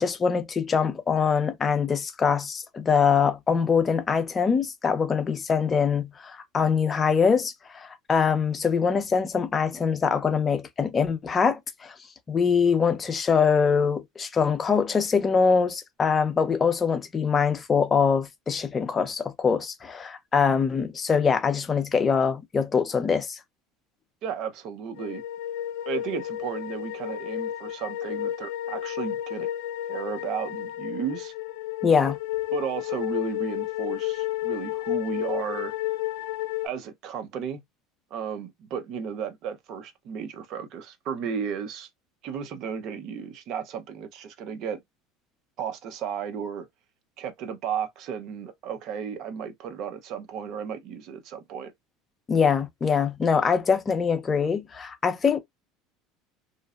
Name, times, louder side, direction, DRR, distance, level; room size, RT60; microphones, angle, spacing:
voice 1, 0.0-11.9 12.3-23.4 31.8-32.2 52.3-55.4, left 6 dB, 25° left, 0.5 m, -23 dB
voice 2, 24.2-25.2 25.9-29.5 29.9-31.3 32.5-35.7 36.6-37.6 38.1-41.9 42.2-44.8 45.6-46.7 47.2-51.7, right 7 dB, 55° right, 0.6 m, -34 dB
sound 1, 25.0-36.7, left 14 dB, 80° left, 0.3 m, -32 dB
2.5 x 2.1 x 2.4 m
supercardioid pair, 110°, 0 cm